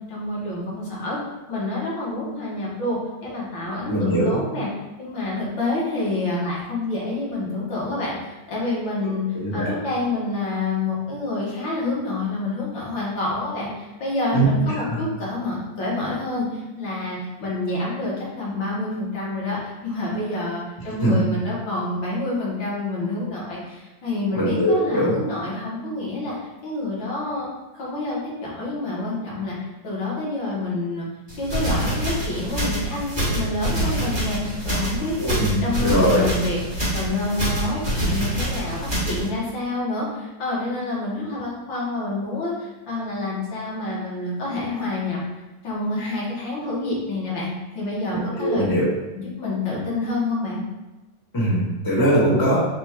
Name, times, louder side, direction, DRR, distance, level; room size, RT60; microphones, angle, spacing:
voice 1, 0.1-1.2 1.5-4.7 5.0-9.2 9.5-26.4 26.6-27.5 27.7-29.6 29.8-31.1 31.4-36.6 36.9-45.2 45.6-47.5 47.7-48.6 49.2-50.6, left 2 dB, 90° left, -6 dB, 2.0 m, -28 dB
voice 2, 3.9-4.4 9.3-9.7 14.3-15.0 21.0-21.2 24.3-25.1 35.2-36.3 48.4-48.9 51.3-52.6, equal, 15° left, -7 dB, 1.2 m, -21 dB
sound 1, 31.3-39.3, right 1 dB, 15° right, 1.1 m, -26 dB
5.9 x 2.3 x 3.5 m, 1.1 s
omnidirectional pair, 2.0 m